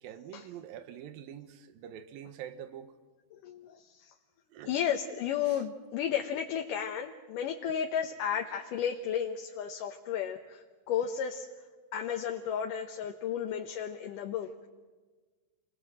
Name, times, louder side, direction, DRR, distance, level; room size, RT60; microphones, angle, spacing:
voice 1, 0.0-2.9 4.5-4.8 5.5-5.6, right 10 dB, 80° right, 2.9 m, -45 dB
voice 2, 3.3-4.1 4.7-11.5 11.9-14.7, left 8 dB, 75° left, 2.5 m, -33 dB
28.5 x 21.0 x 7.8 m
omnidirectional pair, 4.1 m